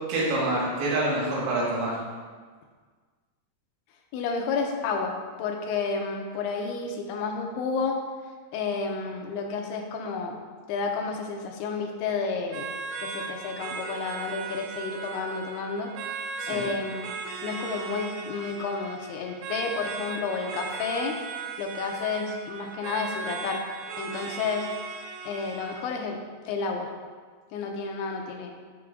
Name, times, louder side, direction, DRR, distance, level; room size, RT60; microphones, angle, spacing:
voice 1, 0.1-1.9 16.4-16.7, right 2 dB, 55° right, -7 dB, 3.4 m, -26 dB
voice 2, 4.1-8.0 8.5-10.4 10.7-12.7 13.0-15.9 16.5-17.1 17.4-21.2 21.6-23.6 24.0-24.7 25.2-26.9 27.5-28.5, left 4 dB, 85° left, 2 dB, 3.1 m, -31 dB
sound 1, 12.5-26.1, right 5 dB, 80° right, 2.9 m, -37 dB
10.0 x 6.2 x 3.7 m, 1.5 s
omnidirectional pair, 5.3 m